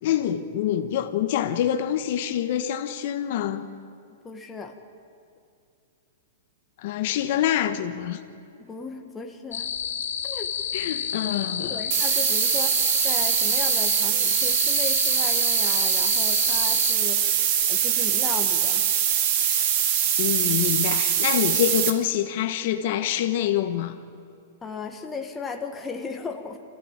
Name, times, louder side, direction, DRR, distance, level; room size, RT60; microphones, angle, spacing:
voice 1, 0.0-3.7 6.8-8.2 10.7-11.8 20.2-24.0, left 11 dB, 50° left, 8 dB, 1.1 m, -26 dB
voice 2, 4.2-4.7 8.6-9.7 10.2-10.5 11.6-18.9 24.6-26.6, left 5 dB, 10° left, 3 dB, 1.4 m, -36 dB
sound 1, 9.5-16.9, left 8 dB, 85° left, 2.4 m, -30 dB
sound 2, 11.9-21.9, right 9 dB, 45° right, 1.9 m, -23 dB
24.5 x 15.5 x 8.8 m, 2.5 s
hypercardioid pair, 160°, 0 cm